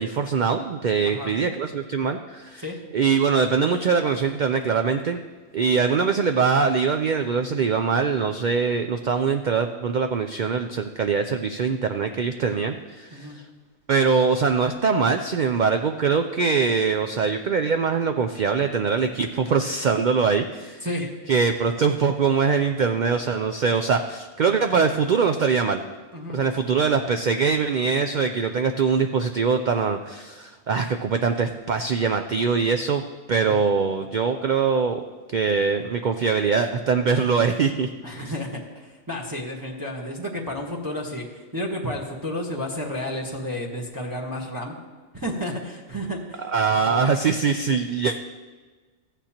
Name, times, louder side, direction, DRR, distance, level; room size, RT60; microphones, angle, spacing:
voice 1, 0.0-2.6 2.9-5.2 5.5-13.4 13.9-20.9 21.3-25.8 26.3-33.0 33.3-35.0 35.3-37.9 46.5-48.2, right 5 dB, 90° right, 6 dB, 0.4 m, -23 dB
voice 2, 20.8-21.1 26.1-26.4 33.4-33.6 38.0-44.7 45.1-47.4, left 1 dB, 15° right, -2 dB, 1.1 m, -32 dB
15.0 x 9.1 x 2.9 m, 1.3 s
omnidirectional pair, 1.3 m